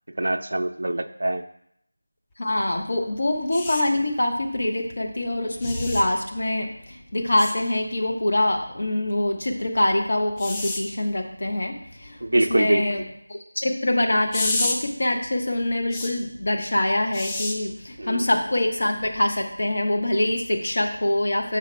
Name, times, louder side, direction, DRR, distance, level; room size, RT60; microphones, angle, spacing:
voice 1, 0.2-1.4 12.2-13.0 18.0-18.2, right 1 dB, 70° right, 7 dB, 0.4 m, -24 dB
voice 2, 2.4-12.2 12.5-21.6, left 1 dB, 55° left, 2 dB, 1.0 m, -24 dB
sound 1, 3.5-3.8 5.6-6.0 7.4-7.5 10.4-10.8 14.3-14.8 15.9-16.1 17.1-17.5 19.0-19.2, left 2 dB, 10° left, 0.3 m, -28 dB
6.4 x 5.1 x 3.4 m, 0.72 s
figure-of-eight pair, 175°, 0 cm